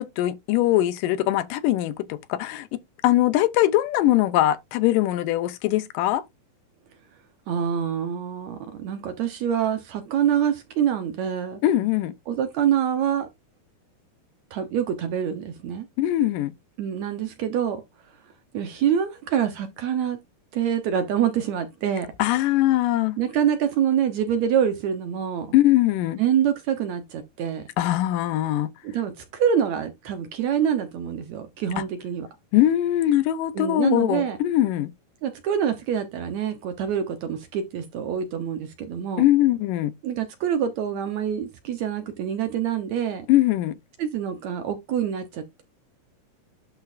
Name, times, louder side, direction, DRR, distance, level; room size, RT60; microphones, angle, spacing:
voice 1, 0.0-2.7 3.0-6.2 11.6-12.1 16.0-16.5 22.2-23.2 25.5-26.2 27.8-28.7 32.5-34.9 39.2-39.9 43.3-43.8, left 14 dB, 80° left, 2.2 m, -21 dB
voice 2, 7.5-11.6 12.3-13.3 14.5-15.9 16.8-17.8 18.5-20.2 20.5-22.1 23.2-25.5 26.2-27.7 28.8-32.3 33.6-34.4 35.2-39.2 40.0-43.3 44.0-45.6, right 9 dB, 70° right, 1.9 m, -26 dB
11.5 x 4.2 x 2.5 m
omnidirectional pair, 4.0 m